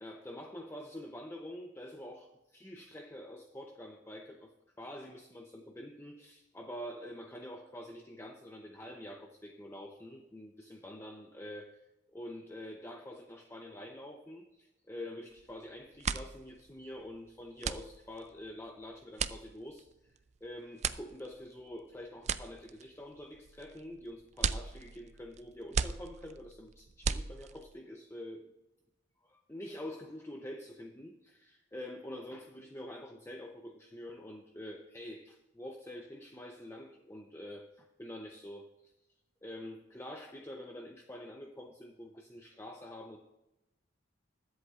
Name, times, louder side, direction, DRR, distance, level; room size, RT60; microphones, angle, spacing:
voice 1, 0.0-4.5 4.8-11.8 12.1-28.5 29.2-38.9 39.4-43.2, left 1 dB, 15° left, 3 dB, 0.6 m, -46 dB
sound 1, 15.3-15.6 15.9-27.8, right 6 dB, 35° right, 0.3 m, -38 dB
21.5 x 8.0 x 2.4 m, 0.95 s
head